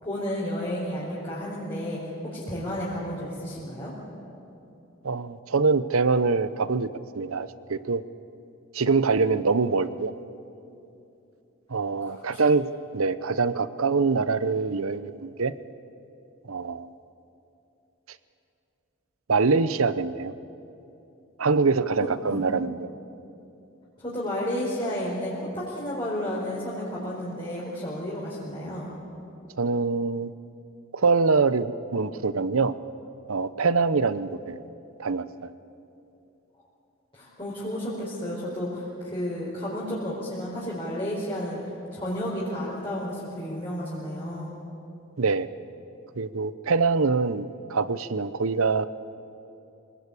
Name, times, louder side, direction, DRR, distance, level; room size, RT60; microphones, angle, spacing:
voice 1, 0.0-3.9 12.0-12.4 22.2-22.4 24.0-28.9 37.1-41.6 41.9-44.6, equal, 25° left, -7 dB, 4.3 m, -32 dB
voice 2, 5.0-6.9 7.1-8.0 8.7-10.1 11.7-15.5 16.5-16.9 19.3-20.3 21.4-22.9 29.6-30.3 30.9-32.8 33.3-34.6 35.0-35.5 45.2-45.5 46.2-48.9, right 4 dB, 90° right, 14 dB, 0.8 m, -24 dB
26.5 x 19.0 x 8.4 m, 2.8 s
head